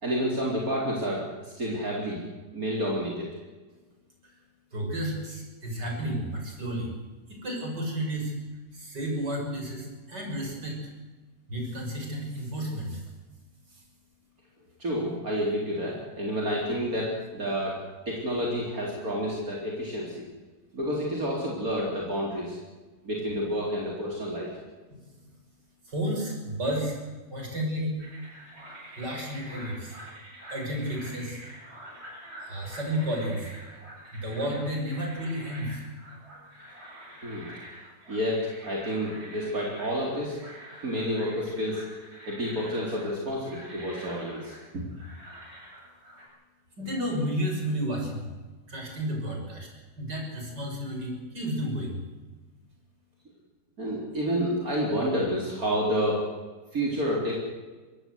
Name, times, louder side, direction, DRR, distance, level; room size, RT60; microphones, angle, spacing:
voice 1, 0.0-2.2 2.5-3.3 14.8-17.8 18.1-20.2 20.7-22.6 23.0-24.6 37.2-37.5 38.1-40.4 40.8-41.8 42.3-44.8 53.8-56.2 56.7-57.3, equal, 55° right, -3 dB, 4.4 m, -29 dB
voice 2, 4.7-6.9 7.3-8.3 8.7-10.8 11.5-13.0 13.7-13.8 24.9-25.3 25.8-27.0 27.3-28.0 29.0-30.0 30.5-31.4 32.4-33.5 34.1-35.8 46.8-48.3 48.7-49.7 50.0-52.0, equal, 75° right, 1 dB, 6.8 m, -32 dB
sound 1, 28.0-46.2, right 1 dB, 35° right, 7.9 m, -46 dB
24.0 x 18.0 x 8.0 m, 1.3 s
omnidirectional pair, 1.8 m